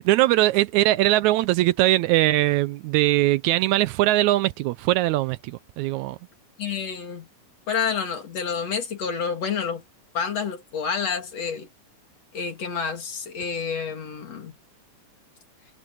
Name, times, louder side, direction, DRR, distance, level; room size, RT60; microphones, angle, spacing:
voice 1, 0.0-6.2, right 16 dB, 80° right, 1.9 m, -21 dB
voice 2, 6.6-7.3 7.7-9.8 10.1-11.7 12.3-14.5, left 6 dB, 55° left, 3.8 m, -29 dB
omnidirectional pair, 3.4 m